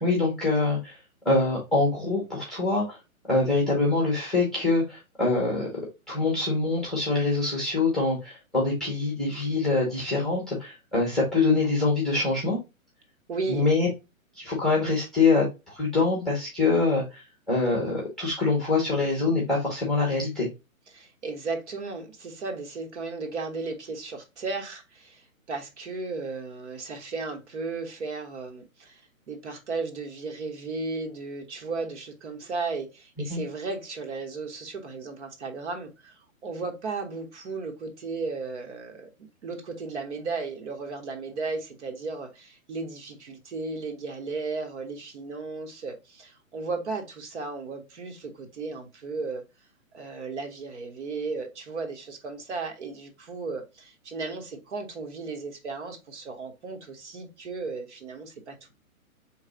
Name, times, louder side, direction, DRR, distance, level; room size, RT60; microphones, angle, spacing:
voice 1, 0.0-1.0 1.2-3.0 3.3-5.7 6.1-12.6 13.5-13.9 14.4-20.5 33.3-33.4, left 3 dB, ahead, 0.9 m, -24 dB
voice 2, 13.3-13.7 20.9-29.0 29.3-39.1 39.4-49.4 49.9-58.7, right 4 dB, 55° right, 1.3 m, -35 dB
4.2 x 3.2 x 3.8 m
hypercardioid pair, 155°, 42 cm